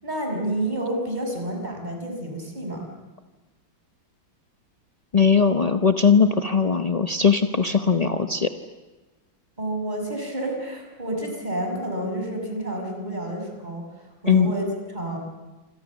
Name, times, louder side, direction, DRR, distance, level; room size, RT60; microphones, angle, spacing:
voice 1, 0.0-2.9 9.6-15.2, right 1 dB, 20° right, 2 dB, 5.9 m, -29 dB
voice 2, 5.1-8.5 14.3-14.5, left 5 dB, 50° left, 7 dB, 0.4 m, -19 dB
27.0 x 25.5 x 7.3 m, 1.2 s
omnidirectional pair, 2.2 m